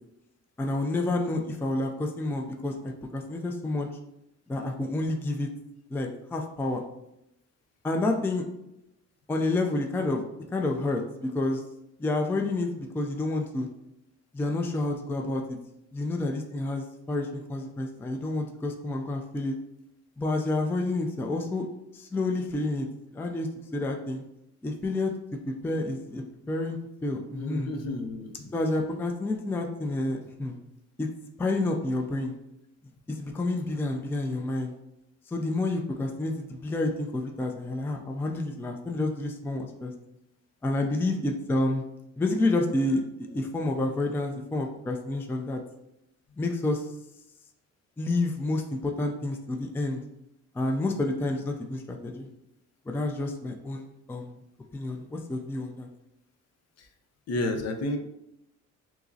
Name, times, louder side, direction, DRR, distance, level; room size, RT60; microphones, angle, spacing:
voice 1, 0.6-3.9 4.5-5.5 5.9-6.8 7.8-8.5 9.3-10.2 10.5-11.6 12.0-13.7 14.3-15.6 15.9-19.5 20.2-21.7 21.9-22.9 23.1-24.2 24.6-27.7 28.5-30.6 31.0-31.1 31.4-32.4 33.1-34.7 35.3-39.9 40.6-41.8 42.2-45.6 46.4-46.9 48.0-50.0 50.5-52.3 52.9-54.3 54.7-55.9, left 2 dB, 10° left, 3 dB, 0.3 m, -29 dB
voice 2, 27.4-28.5 56.8-56.9 57.3-58.0, left 2 dB, 55° left, 5 dB, 0.6 m, -31 dB
4.6 x 2.0 x 2.6 m, 0.82 s
cardioid pair, 90°, 30 cm